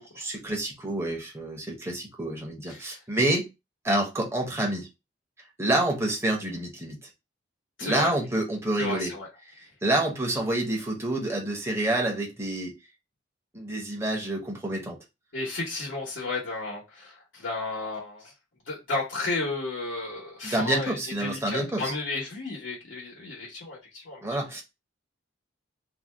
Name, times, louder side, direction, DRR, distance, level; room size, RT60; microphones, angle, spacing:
voice 1, 0.2-3.5 3.8-4.9 5.6-7.0 7.8-9.1 9.5-12.7 13.5-15.0 20.4-21.9 24.2-24.6, right 1 dB, 15° right, 0.8 m, -28 dB
voice 2, 2.7-3.0 7.8-8.1 8.8-9.3 15.3-18.3 18.7-24.4, left 3 dB, 90° left, 1.0 m, -33 dB
2.6 x 2.2 x 3.2 m
head